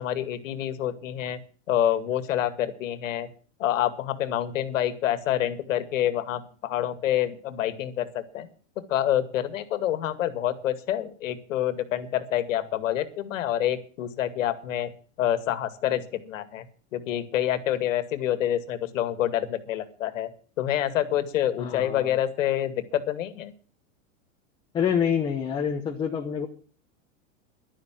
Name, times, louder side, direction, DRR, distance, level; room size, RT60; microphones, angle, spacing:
voice 1, 0.0-1.4 1.7-3.3 3.6-8.5 8.9-14.9 15.2-16.6 16.9-20.3 20.6-23.5, left 11 dB, 80° left, 13 dB, 2.1 m, -27 dB
voice 2, 21.6-22.1 24.7-26.5, left 7 dB, 10° left, 1 dB, 0.9 m, -27 dB
11.5 x 11.0 x 7.5 m, 0.41 s
supercardioid pair, 175°, 38 cm